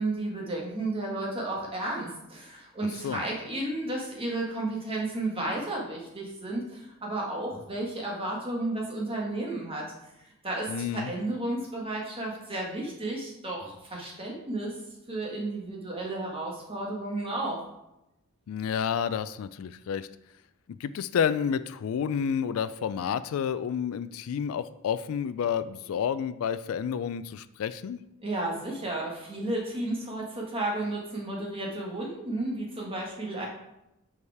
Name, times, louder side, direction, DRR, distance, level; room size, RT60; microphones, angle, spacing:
voice 1, 0.0-9.8 10.4-14.7 15.1-17.6 28.2-33.5, right 2 dB, 25° right, -2 dB, 1.5 m, -32 dB
voice 2, 10.7-11.1 18.5-20.1 20.8-28.0, left 7 dB, 75° left, 14 dB, 0.3 m, -30 dB
5.3 x 4.8 x 4.7 m, 0.87 s
head